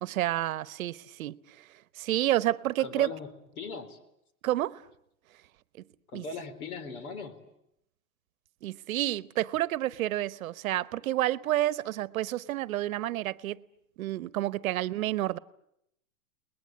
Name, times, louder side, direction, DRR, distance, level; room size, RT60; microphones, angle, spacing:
voice 1, 0.0-1.7 2.0-3.1 4.4-4.8 6.1-6.2 8.6-13.6 14.0-15.4, right 14 dB, 65° right, 1.0 m, -29 dB
voice 2, 2.8-4.0 6.1-7.5, left 4 dB, 75° left, 4.2 m, -39 dB
29.5 x 20.5 x 9.4 m
supercardioid pair, 155°, 44 cm